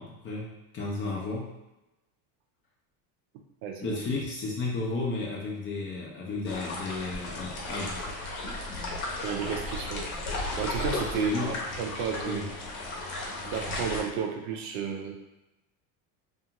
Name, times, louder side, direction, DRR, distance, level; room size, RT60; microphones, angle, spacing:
voice 1, 0.0-1.5 3.8-8.1 11.1-11.6 12.2-12.4, left 3 dB, 25° left, -4 dB, 0.4 m, -33 dB
voice 2, 3.6-4.0 9.2-10.1 10.6-12.4 13.4-15.1, right 7 dB, 55° right, 2 dB, 0.5 m, -33 dB
sound 1, 6.5-14.0, left 2 dB, 70° left, 0.9 m, -35 dB
2.4 x 2.4 x 2.8 m, 0.97 s
supercardioid pair, 130°, 46 cm